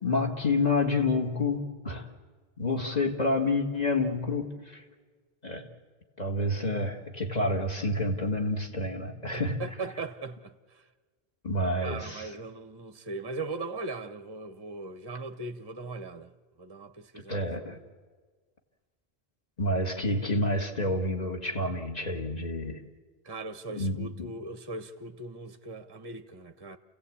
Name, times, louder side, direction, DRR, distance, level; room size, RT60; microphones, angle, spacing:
voice 1, 0.0-2.1 2.6-4.8 5.4-5.7 6.2-9.6 11.4-12.3 17.3-17.8 19.6-22.8 23.7-24.3, left 2 dB, 40° left, 1.9 m, -29 dB
voice 2, 2.7-3.1 9.3-10.8 11.8-16.3 16.6-17.7 23.2-26.8, right 3 dB, 25° right, 0.7 m, -39 dB
29.5 x 16.0 x 8.6 m
omnidirectional pair, 1.1 m